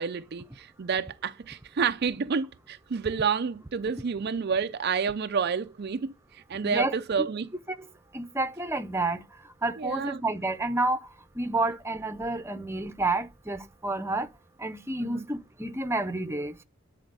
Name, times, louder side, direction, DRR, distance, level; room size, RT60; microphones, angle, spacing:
voice 1, 0.0-7.5 9.8-10.2 15.0-15.2, right 6 dB, 45° right, 0.4 m, -29 dB
voice 2, 6.6-7.3 8.1-9.2 9.6-11.1 11.4-14.3 14.6-16.6, right 2 dB, 10° right, 0.7 m, -30 dB
10.5 x 4.2 x 6.7 m
head